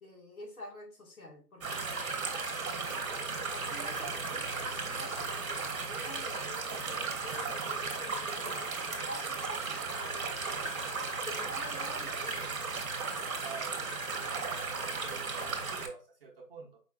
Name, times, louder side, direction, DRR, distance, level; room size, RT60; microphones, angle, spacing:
voice 1, 0.0-2.0 2.9-10.4 11.2-12.5 13.1-13.3, left 1 dB, 60° left, -1 dB, 2.1 m, -49 dB
sound 1, 1.6-15.9, right 4 dB, 55° right, 1.2 m, -35 dB
voice 2, 13.4-13.8 14.2-16.8, right 5 dB, 35° right, -2 dB, 1.1 m, -48 dB
4.9 x 3.4 x 2.5 m, 0.38 s
figure-of-eight pair, 155°, 48 cm